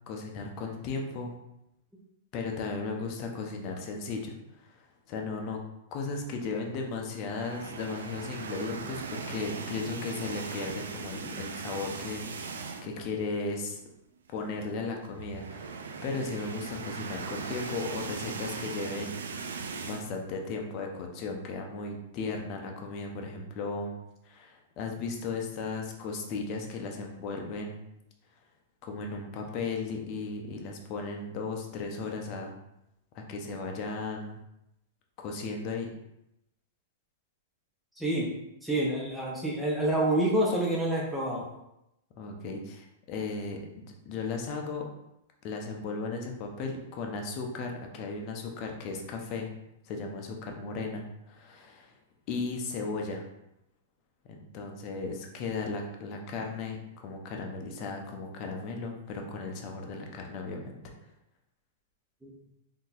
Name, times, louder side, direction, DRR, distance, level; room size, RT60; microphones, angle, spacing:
voice 1, 0.1-1.3 2.3-4.7 5.1-5.6 5.9-13.8 14.3-19.2 19.8-23.9 24.2-27.8 28.8-32.5 33.1-34.4 35.2-35.9 42.2-44.9 45.4-49.5 49.8-51.9 52.3-53.2 54.3-60.8, left 4 dB, 45° left, 2 dB, 0.6 m, -36 dB
sound 1, 7.3-13.1 13.4-13.6 13.9-14.0 15.0-20.1, right 5 dB, 85° right, 0.3 m, -39 dB
voice 2, 38.0-38.3 38.6-41.5 62.2-62.3, right 1 dB, 5° right, -4 dB, 0.7 m, -27 dB
3.7 x 2.7 x 2.4 m, 0.85 s
hypercardioid pair, 125°, 0 cm